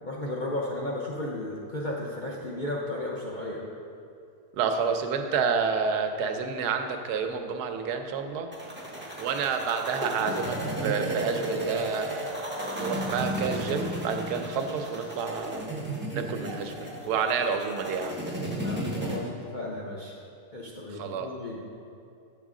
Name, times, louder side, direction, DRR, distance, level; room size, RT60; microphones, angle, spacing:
voice 1, 0.0-3.7 18.6-20.2 20.5-21.6, left 1 dB, 65° left, -3 dB, 0.4 m, -34 dB
voice 2, 4.5-8.5 9.2-15.7 16.1-18.2 20.9-21.3, right 5 dB, 85° right, 6 dB, 1.2 m, -29 dB
sound 1, 8.5-19.2, right 1 dB, 15° right, 0.4 m, -33 dB
8.0 x 6.2 x 3.7 m, 2.5 s
omnidirectional pair, 1.7 m